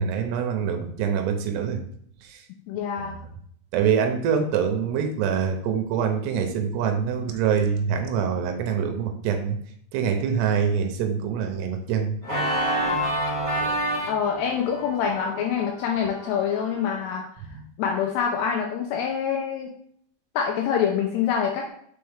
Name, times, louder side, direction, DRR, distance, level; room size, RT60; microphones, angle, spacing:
voice 1, 0.0-1.8 2.2-2.4 3.0-3.2 3.7-9.6 9.9-12.2 17.5-17.6, right 7 dB, 80° right, 5 dB, 2.7 m, -25 dB
voice 2, 2.7-3.2 14.1-17.2 17.8-19.7 20.4-21.7, left 7 dB, 80° left, 2 dB, 2.5 m, -25 dB
Organ, 12.2-17.1, equal, 25° right, 1.6 m, -29 dB
6.4 x 4.5 x 3.5 m, 0.66 s
omnidirectional pair, 5.1 m